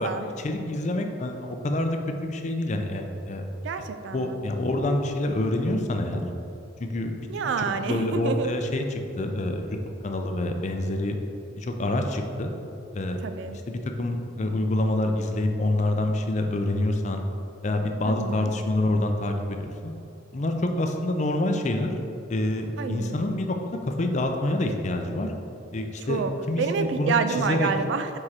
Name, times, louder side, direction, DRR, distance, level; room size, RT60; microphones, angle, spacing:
voice 1, 0.4-3.4 4.1-6.2 6.8-7.5 7.8-9.8 10.0-11.2 11.5-12.5 12.9-13.2 13.5-17.2 17.6-20.0 20.3-21.9 22.3-25.3 25.7-27.7, left 1 dB, 40° left, 4 dB, 0.5 m, -27 dB
voice 2, 3.6-4.4 7.3-8.5 13.2-13.6 18.0-18.5 22.8-23.2 26.1-28.2, right 5 dB, 70° right, 9 dB, 0.3 m, -28 dB
4.9 x 4.8 x 4.3 m, 2.7 s
head